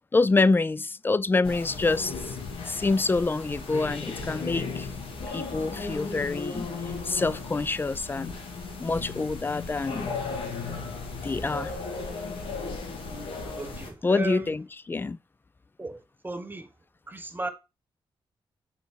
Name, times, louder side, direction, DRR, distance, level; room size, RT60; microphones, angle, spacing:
voice 1, 0.1-2.1 2.6-4.9 5.3-8.4 8.8-10.1 11.2-11.7 14.0-15.2, left 3 dB, 20° left, 0.3 m, -26 dB
sound 1, 1.4-13.9, left 4 dB, 75° left, 2.0 m, -36 dB
voice 2, 13.6-14.6 15.8-16.7 17.1-17.5, right 2 dB, 20° right, 1.1 m, -36 dB
6.1 x 4.5 x 4.4 m
cardioid pair, 75°, 9 cm